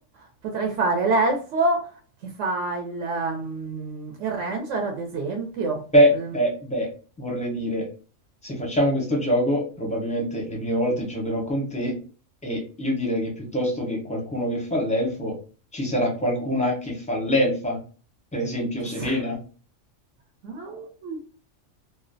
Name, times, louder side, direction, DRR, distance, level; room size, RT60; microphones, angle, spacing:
voice 1, 0.5-1.9 2.4-5.8 19.0-19.2 20.4-21.2, right 3 dB, 70° right, 2 dB, 0.9 m, -26 dB
voice 2, 5.9-6.9 7.2-7.9 8.4-12.0 12.4-15.4 15.7-17.8 18.3-19.4, equal, 10° left, -1 dB, 0.4 m, -24 dB
2.4 x 2.0 x 2.5 m, 0.38 s
omnidirectional pair, 1.4 m